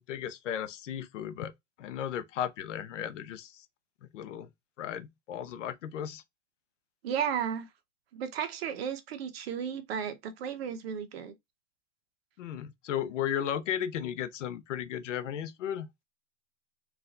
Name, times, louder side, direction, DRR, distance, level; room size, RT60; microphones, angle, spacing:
voice 1, 0.1-1.5 1.8-3.7 4.1-4.5 4.8-6.2 12.4-15.9, left 9 dB, 80° left, 0.9 m, -35 dB
voice 2, 7.0-7.7 8.1-11.3, right 8 dB, 55° right, 1.1 m, -34 dB
4.6 x 2.6 x 3.9 m
supercardioid pair, 175°, 37 cm